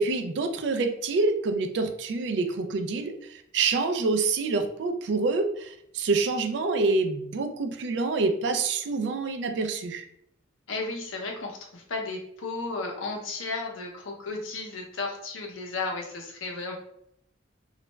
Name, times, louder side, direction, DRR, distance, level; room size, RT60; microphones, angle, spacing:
voice 1, 0.0-10.0, right 3 dB, 65° right, 7 dB, 0.3 m, -27 dB
voice 2, 10.7-16.8, left 3 dB, 85° left, 1 dB, 0.6 m, -34 dB
2.3 x 2.0 x 3.2 m, 0.72 s
head